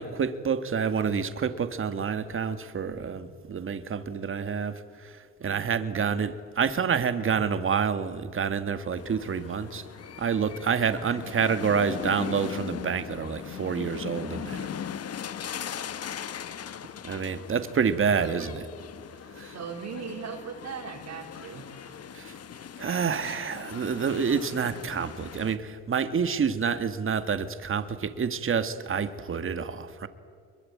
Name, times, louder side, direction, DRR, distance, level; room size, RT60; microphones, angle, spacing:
voice 1, 0.0-9.8 10.2-14.7 17.0-18.7 19.3-19.5 22.1-22.3 22.8-30.1, right 6 dB, 45° right, 10 dB, 1.8 m, -28 dB
sound 1, 9.0-25.6, left 8 dB, 55° left, 1.3 m, -39 dB
voice 2, 19.5-22.0 27.5-27.7, right 6 dB, 60° right, -1 dB, 3.3 m, -39 dB
25.0 x 22.5 x 8.7 m, 2.1 s
cardioid pair, 90°, 30 cm